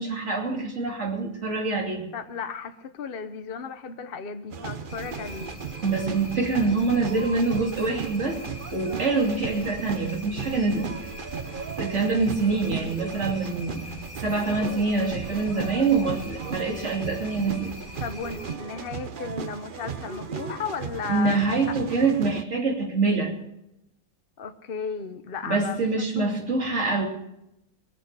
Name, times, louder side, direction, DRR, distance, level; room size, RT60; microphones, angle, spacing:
voice 1, 0.0-2.0 5.8-8.4 8.7-10.9 11.8-13.8 14.2-17.7 21.1-23.3 25.4-27.1, right 3 dB, 40° right, 0 dB, 3.0 m, -25 dB
voice 2, 2.1-5.5 18.0-21.7 24.4-25.9 26.1-26.5, left 6 dB, 45° left, 8 dB, 0.8 m, -35 dB
sound 1, 4.5-22.4, right 6 dB, 60° right, 0.5 m, -36 dB
sound 2, 4.9-18.6, left 2 dB, 20° left, 1.1 m, -43 dB
22.0 x 8.3 x 6.7 m, 0.83 s
omnidirectional pair, 1.9 m